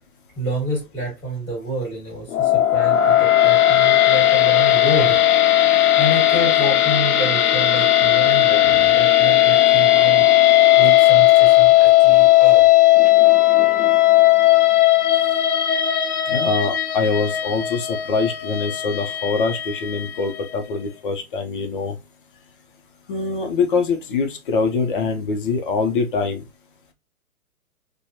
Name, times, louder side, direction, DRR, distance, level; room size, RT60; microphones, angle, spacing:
voice 1, 0.4-5.2 6.0-10.3 10.8-12.6, right 1 dB, 5° left, 1.4 m, -28 dB
sound 1, 2.3-20.5, left 14 dB, 75° left, 0.7 m, -16 dB
voice 2, 16.3-22.0 23.1-26.4, left 4 dB, 35° left, 0.6 m, -23 dB
4.7 x 2.2 x 2.8 m
hypercardioid pair, 140°, 45 cm